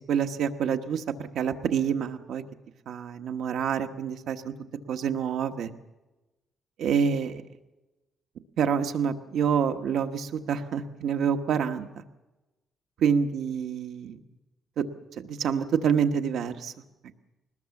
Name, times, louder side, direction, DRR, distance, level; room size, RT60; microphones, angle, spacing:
voice 1, 0.1-2.4 2.9-4.5 4.9-5.7 6.8-7.4 8.6-12.0 13.0-14.2 14.8-14.9 15.2-16.7, right 7 dB, 65° right, 7 dB, 1.2 m, -27 dB
22.0 x 20.0 x 7.1 m, 1.1 s
cardioid pair, 180°, 0 cm